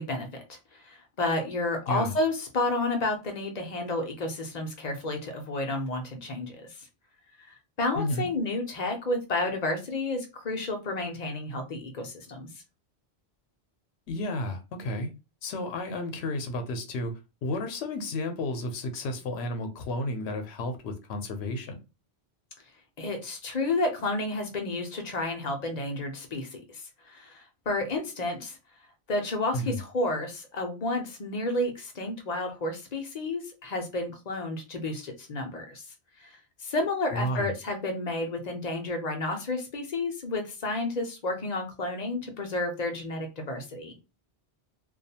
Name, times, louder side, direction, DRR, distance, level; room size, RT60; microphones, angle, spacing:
voice 1, 0.0-6.9 7.8-12.5 23.0-28.6 29.1-35.8 36.2-43.9, left 2 dB, 45° left, 4 dB, 0.7 m, -31 dB
voice 2, 7.9-8.3 14.1-15.1 15.4-17.1 17.4-21.8 29.5-29.8 37.1-37.5, left 1 dB, 80° left, 6 dB, 0.8 m, -32 dB
2.4 x 2.3 x 2.7 m, 0.28 s
omnidirectional pair, 1.1 m